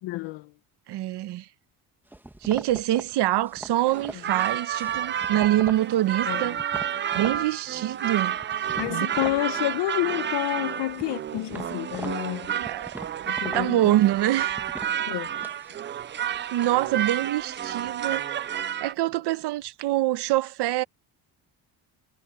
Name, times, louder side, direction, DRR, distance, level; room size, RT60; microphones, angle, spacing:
voice 1, 0.0-0.5 6.3-6.5 6.9-7.3 8.8-12.5 12.9-13.9 15.1-15.3, left 18 dB, 90° left, 1.0 m, -30 dB
voice 2, 0.9-1.5 2.4-6.6 7.1-8.4 8.9-9.1 12.5-13.0 13.5-14.6 16.5-18.3 18.8-20.8, right 14 dB, 75° right, 1.1 m, -25 dB
sound 1, 2.1-5.9 6.3-7.4 7.8-9.4 9.7-10.4 10.7-16.9, right 1 dB, 5° right, 1.2 m, -42 dB
sound 2, 3.8-18.9, right 9 dB, 30° right, 0.4 m, -30 dB
cardioid pair, 145°, 41 cm